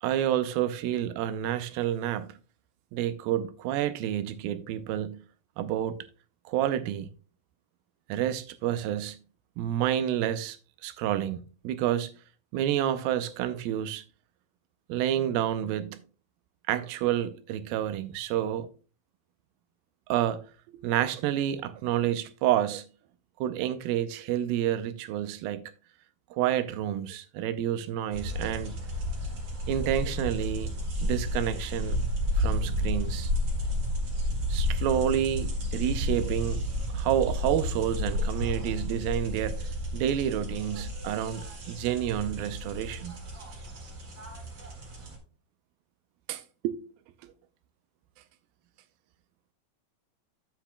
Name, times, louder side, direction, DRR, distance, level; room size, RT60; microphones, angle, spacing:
voice 1, 0.0-2.4 2.9-5.2 5.6-6.0 6.5-7.1 8.1-9.2 9.6-10.6 10.8-11.4 11.6-12.1 12.5-14.0 14.9-16.0 16.7-18.7 20.1-20.4 20.7-22.9 23.4-25.7 26.3-28.8 29.7-30.7 31.0-32.0 32.4-33.3 34.5-36.6 36.9-39.6 39.9-43.2 46.3-46.8, right 11 dB, 85° right, 2.4 m, -29 dB
sound 1, 28.1-45.2, left 1 dB, 45° right, 2.3 m, -31 dB
10.0 x 8.2 x 2.2 m
omnidirectional pair, 4.2 m